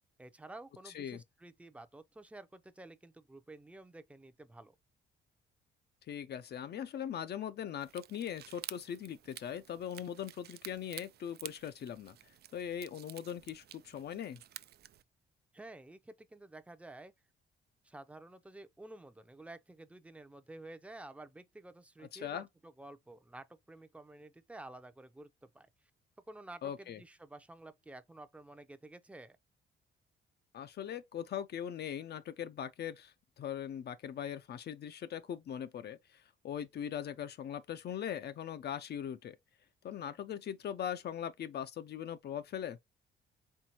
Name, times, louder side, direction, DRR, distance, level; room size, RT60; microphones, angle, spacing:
voice 1, 0.2-4.8 15.5-17.1 17.8-25.7 26.3-29.4, right 2 dB, 5° right, 0.6 m, -51 dB
voice 2, 0.9-1.2 6.1-12.1 12.5-14.4 22.1-22.5 26.6-27.0 30.5-39.4 39.8-42.8, left 9 dB, 55° left, 0.5 m, -40 dB
sound 1, 7.8-15.0, right 12 dB, 55° right, 0.4 m, -51 dB
4.5 x 3.2 x 2.8 m
cardioid pair, 90°, 20 cm